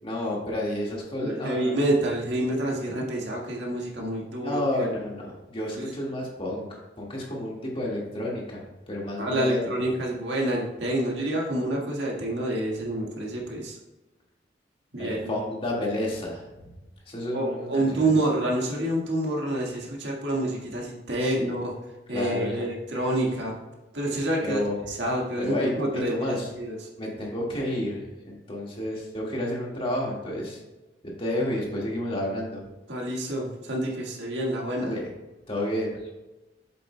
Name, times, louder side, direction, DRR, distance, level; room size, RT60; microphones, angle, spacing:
voice 1, 0.0-1.7 4.4-9.7 15.0-16.7 17.1-18.2 21.2-21.5 22.1-22.7 24.4-24.8 25.4-26.5 27.0-30.6 31.0-32.6 34.8-35.1 35.5-36.1, left 1 dB, 30° left, -2 dB, 1.8 m, -31 dB
voice 2, 1.2-4.9 9.2-13.8 14.9-15.3 17.3-21.7 22.1-23.5 23.9-24.6 24.9-26.8 32.9-34.9, right 1 dB, 75° right, -1 dB, 1.7 m, -28 dB
7.9 x 7.6 x 2.2 m, 1.1 s
head